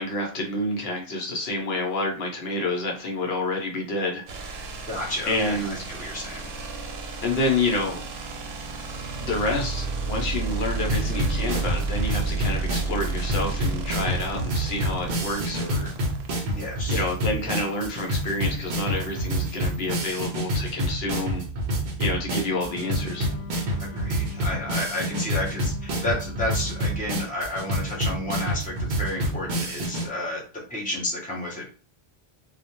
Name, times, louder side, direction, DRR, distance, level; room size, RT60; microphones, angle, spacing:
voice 1, 0.0-4.7 5.3-5.8 7.2-8.1 9.2-15.9 16.9-21.4 22.0-23.3, left 2 dB, 80° left, 1 dB, 0.9 m, -28 dB
sound 1, 4.3-20.4, right 3 dB, 80° right, 0.8 m, -33 dB
voice 2, 4.9-6.7 16.5-17.1 23.8-30.4 30.7-31.7, left 1 dB, 10° left, -3 dB, 0.6 m, -31 dB
sound 2, 10.9-30.1, right 1 dB, 55° right, 0.7 m, -28 dB
Wind instrument woodwind instrument, 22.5-27.2, left 3 dB, 35° left, 1.0 m, -42 dB
2.3 x 2.1 x 2.9 m, 0.37 s
omnidirectional pair, 1.0 m